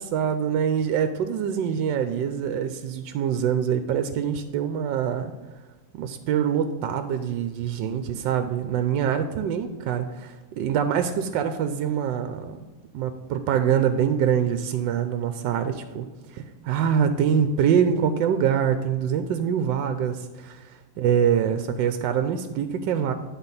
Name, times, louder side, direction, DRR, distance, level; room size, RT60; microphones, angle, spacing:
voice 1, 0.1-5.3 5.9-12.6 12.9-16.1 16.3-23.1, right 8 dB, 80° right, 9 dB, 1.3 m, -24 dB
11.0 x 4.0 x 5.5 m, 1.2 s
omnidirectional pair, 2.0 m